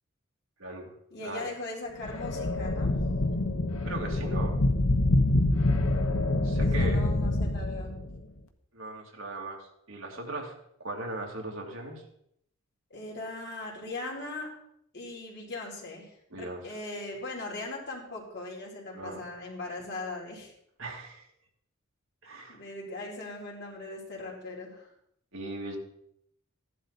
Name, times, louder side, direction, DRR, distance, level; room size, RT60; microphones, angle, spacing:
voice 1, 0.6-0.9 1.2-1.5 3.8-4.6 6.4-7.0 8.7-10.5 10.8-12.0 16.3-16.6 18.9-19.2 20.8-21.2 22.2-22.6 25.3-25.8, right 2 dB, 65° right, 0 dB, 2.8 m, -38 dB
voice 2, 1.1-2.9 6.6-7.9 12.9-14.5 14.9-20.5 22.5-24.9, left 2 dB, 55° left, -2 dB, 4.3 m, -39 dB
sound 1, 2.0-8.2, left 2 dB, 80° left, 1.2 m, -26 dB
14.5 x 11.5 x 4.3 m, 0.73 s
head